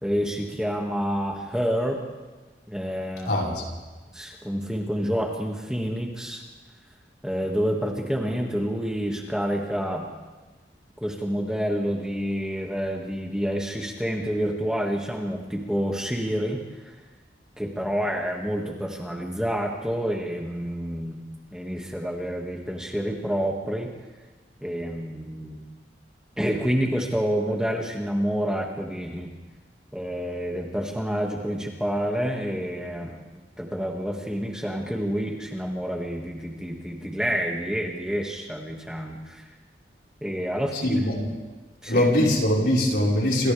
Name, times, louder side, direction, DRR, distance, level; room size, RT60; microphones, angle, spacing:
voice 1, 0.0-2.0 2.7-3.4 4.1-6.4 7.2-10.1 11.0-17.0 17.6-21.2 21.5-23.9 24.6-25.6 26.4-29.3 29.9-39.5 40.2-41.1 41.8-42.1, equal, 5° right, -1 dB, 2.0 m, -28 dB
voice 2, 3.3-3.6 40.8-41.3 41.9-43.5, left 1 dB, 70° left, -3 dB, 5.1 m, -22 dB
27.5 x 27.0 x 3.5 m, 1.2 s
head